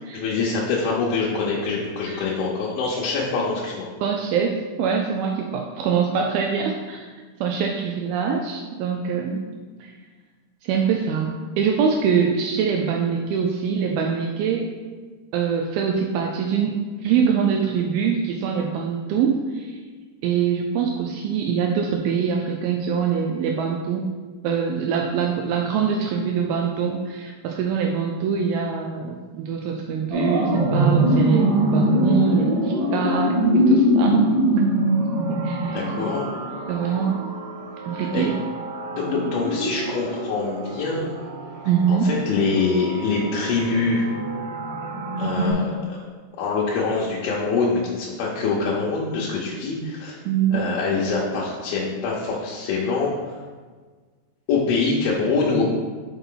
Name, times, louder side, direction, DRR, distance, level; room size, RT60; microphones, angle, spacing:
voice 1, 0.1-3.9 35.7-36.3 38.1-38.3 38.9-41.1 41.9-44.1 45.2-45.7 46.4-50.2 50.5-53.4 54.5-55.7, left 4 dB, 75° left, -6 dB, 2.6 m, -24 dB
voice 2, 4.0-7.1 7.4-9.4 9.8-9.9 10.6-14.7 15.3-19.8 20.2-24.1 24.4-34.4 35.3-35.8 36.7-37.2 37.9-38.4 41.7-42.1 50.3-50.6, right 6 dB, 85° right, 2 dB, 2.2 m, -24 dB
sound 1, 30.1-45.5, equal, 55° right, 1.8 m, -23 dB
5.8 x 5.5 x 3.8 m, 1.4 s
omnidirectional pair, 4.7 m